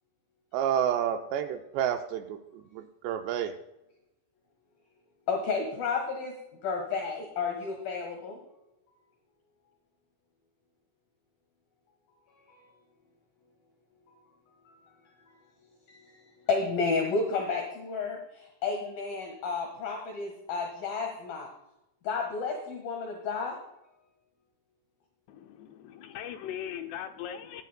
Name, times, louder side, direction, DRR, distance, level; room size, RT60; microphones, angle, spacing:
voice 1, 0.5-3.5, right 9 dB, 80° right, 6 dB, 2.6 m, -30 dB
voice 2, 5.3-6.3 6.6-8.4 12.5-12.6 14.1-14.2 14.7-14.8 15.9-16.1 16.5-21.5 22.0-23.6, left 4 dB, 60° left, 2 dB, 2.9 m, -31 dB
voice 3, 25.3-27.6, left 10 dB, 80° left, 6 dB, 2.6 m, -39 dB
18.5 x 11.0 x 2.2 m, 0.88 s
omnidirectional pair, 5.2 m